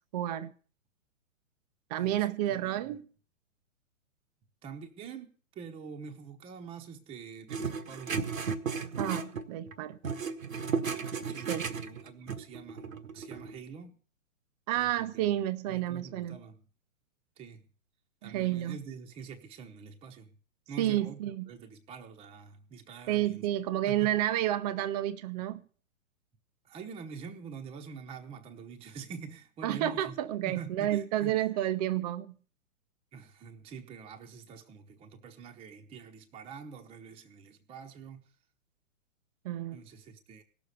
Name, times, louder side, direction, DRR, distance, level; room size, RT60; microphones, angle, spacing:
voice 1, 0.1-0.5 1.9-3.1 9.0-10.0 11.5-11.7 14.7-16.4 18.2-18.8 20.8-21.5 23.1-25.6 29.6-32.3 39.4-39.8, right 13 dB, 30° right, 0.6 m, -30 dB
voice 2, 1.9-2.9 4.6-8.2 11.3-12.8 13.1-14.0 14.7-15.3 15.7-16.6 17.4-17.6 18.2-20.3 20.7-21.2 21.5-23.5 23.9-24.1 26.7-30.1 30.4-31.4 33.1-38.2 39.7-40.4, right 6 dB, 15° right, 1.0 m, -46 dB
sound 1, 7.5-9.8 10.0-13.5, right 5 dB, 75° right, 1.4 m, -34 dB
17.0 x 6.9 x 6.7 m
figure-of-eight pair, 120°, 40 cm